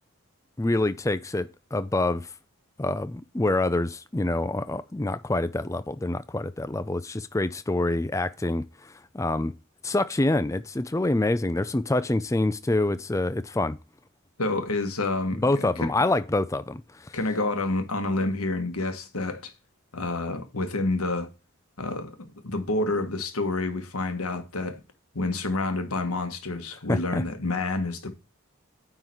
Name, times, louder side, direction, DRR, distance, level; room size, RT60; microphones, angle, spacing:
voice 1, 0.6-2.3 2.8-9.5 9.8-13.8 15.4-16.8 26.9-27.2, left 2 dB, 15° left, 0.4 m, -26 dB
voice 2, 14.4-15.9 17.1-19.5 19.9-21.3 21.8-24.8 25.1-28.1, left 2 dB, 90° left, 1.6 m, -28 dB
9.5 x 3.9 x 4.6 m
head